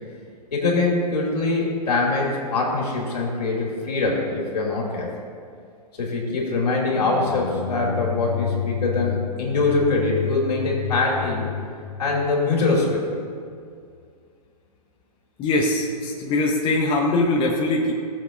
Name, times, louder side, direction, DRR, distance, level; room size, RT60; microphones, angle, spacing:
voice 1, 0.5-5.1 6.0-11.4 12.0-13.0, left 3 dB, 75° left, -3 dB, 2.7 m, -23 dB
sound 1, 6.9-12.9, left 8 dB, 45° left, 0.7 m, -30 dB
voice 2, 15.4-17.9, left 2 dB, 25° left, -1 dB, 1.1 m, -22 dB
16.5 x 7.6 x 2.6 m, 2.3 s
hypercardioid pair, 115°, 21 cm